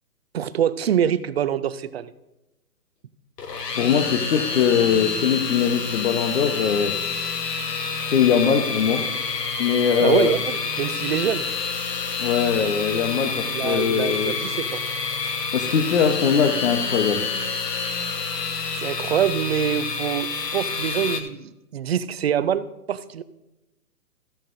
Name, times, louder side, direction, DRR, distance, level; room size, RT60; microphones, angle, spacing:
voice 1, 0.3-2.1 10.0-11.5 13.5-14.8 18.8-23.2, right 9 dB, 45° right, 15 dB, 0.5 m, -25 dB
sound 1, 3.4-21.2, left 5 dB, 90° left, 1.3 m, -28 dB
voice 2, 3.7-7.0 8.1-9.1 9.6-10.3 12.2-14.3 15.5-17.3, left 7 dB, 45° left, 4 dB, 0.9 m, -21 dB
14.0 x 10.5 x 2.6 m, 0.96 s
hypercardioid pair, 145°, 47 cm